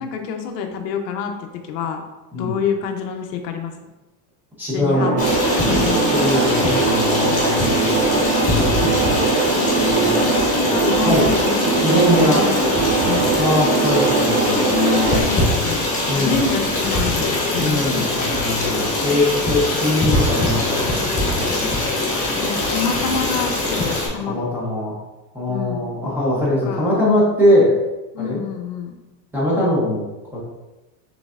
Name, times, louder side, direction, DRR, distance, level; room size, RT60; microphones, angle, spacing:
voice 1, 0.0-2.0 2.4-3.7 4.7-5.2 5.6-6.2 9.5-13.4 14.6-15.8 16.1-18.1 22.4-24.4 25.5-25.9 26.6-27.0 28.1-29.0, left 6 dB, 80° left, 4 dB, 0.8 m, -27 dB
voice 2, 4.6-5.1 6.1-8.0 9.8-10.1 11.0-11.3 11.8-12.5 13.4-15.0 16.1-16.4 17.6-21.6 24.2-25.0 25.3-27.7 28.2-28.4 29.3-30.0 30.3-30.4, left 1 dB, 5° right, -8 dB, 0.6 m, -21 dB
sound 1, 4.9-15.2, right 4 dB, 75° right, 1.3 m, -21 dB
Stream, 5.2-24.1, left 2 dB, 15° left, 0.9 m, -22 dB
6.1 x 3.3 x 2.4 m, 1.1 s
supercardioid pair, 170°, 49 cm